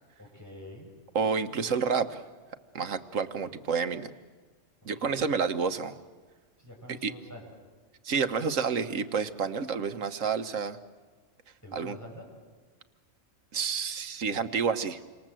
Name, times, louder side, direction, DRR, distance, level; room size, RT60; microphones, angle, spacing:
voice 1, 0.2-0.9 3.4-3.5 5.0-5.3 6.6-7.4 11.6-12.3, left 1 dB, 15° left, -2 dB, 7.6 m, -46 dB
voice 2, 1.1-2.2 2.7-4.1 4.8-6.0 7.0-7.1 8.0-10.8 11.7-12.0 13.5-15.0, right 5 dB, 80° right, 9 dB, 1.5 m, -29 dB
29.5 x 26.0 x 7.7 m, 1.4 s
omnidirectional pair, 1.3 m